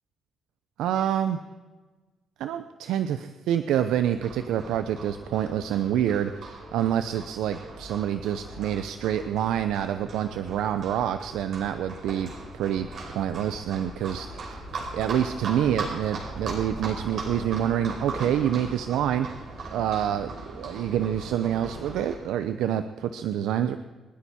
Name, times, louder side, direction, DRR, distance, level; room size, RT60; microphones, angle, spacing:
voice 1, 0.8-1.4 2.4-14.6 14.9-19.3 19.7-23.8, right 10 dB, 85° right, 10 dB, 0.7 m, -27 dB
Livestock farm animals working animals, 4.0-22.1, right 2 dB, 65° right, 5.4 m, -39 dB
28.0 x 10.0 x 4.3 m, 1.3 s
cardioid pair, 90°, 0 cm